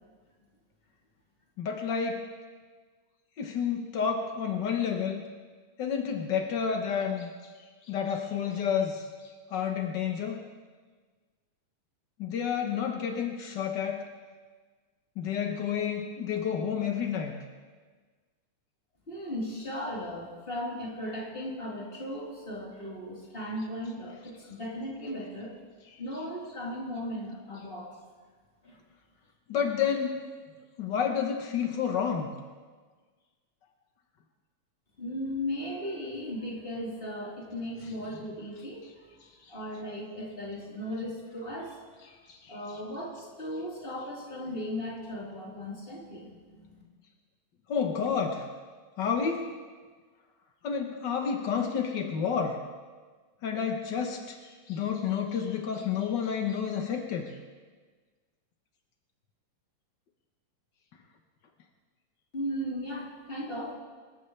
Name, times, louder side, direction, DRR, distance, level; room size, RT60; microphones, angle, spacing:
voice 1, 1.6-2.3 3.4-5.2 5.8-7.5 7.9-9.1 9.5-10.4 12.2-14.0 15.2-17.4 25.9-26.0 29.5-30.2 30.8-32.3 42.0-42.8 47.7-48.4 49.0-49.5 50.6-52.6 53.4-54.4 54.7-57.3, left 7 dB, 75° left, 3 dB, 1.0 m, -30 dB
voice 2, 19.1-25.5 26.0-27.9 28.6-28.8 35.0-38.8 39.5-41.8 42.5-46.8 62.3-63.7, equal, 15° left, -6 dB, 3.9 m, -36 dB
26.0 x 14.5 x 3.3 m, 1.5 s
omnidirectional pair, 3.6 m